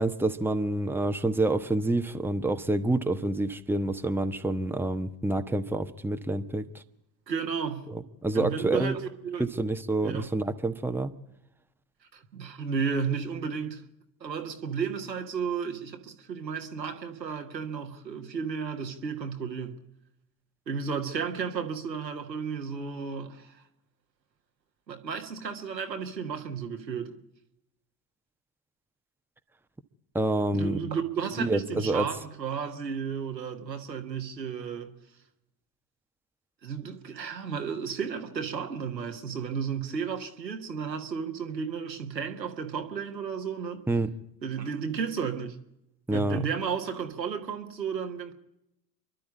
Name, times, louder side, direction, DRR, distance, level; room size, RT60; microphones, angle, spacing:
voice 1, 0.0-6.7 7.9-9.0 9.4-11.1 30.1-30.8 31.4-32.1 43.9-44.1 46.1-46.4, right 2 dB, 5° right, 1.2 m, -27 dB
voice 2, 7.3-7.9 8.3-9.4 10.0-10.3 12.1-13.8 14.2-19.8 20.7-23.6 24.9-27.1 30.5-35.0 36.6-43.9 44.4-45.6 46.1-48.3, right 6 dB, 85° right, 1.5 m, -33 dB
29.0 x 12.0 x 8.4 m
figure-of-eight pair, 55°, 49 cm